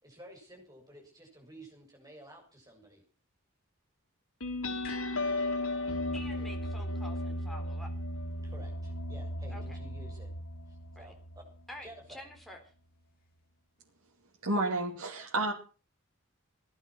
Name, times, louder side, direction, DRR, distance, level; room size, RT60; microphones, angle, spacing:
voice 1, 0.0-3.0 8.4-10.3 10.7-11.5 11.8-12.2, right 1 dB, 15° right, 0 dB, 7.6 m, -52 dB
sound 1, 4.4-11.6, left 1 dB, 80° left, 3.3 m, -35 dB
sound 2, 4.8-9.2 9.5-9.6, left 5 dB, 45° left, 7.4 m, -54 dB
voice 2, 6.1-7.9 9.5-9.8 11.0-11.1 11.7-12.6, left 1 dB, ahead, 2 dB, 4.0 m, -48 dB
voice 3, 14.4-15.5, right 2 dB, 90° right, 0 dB, 2.5 m, -30 dB
18.5 x 12.0 x 6.2 m, 0.37 s
head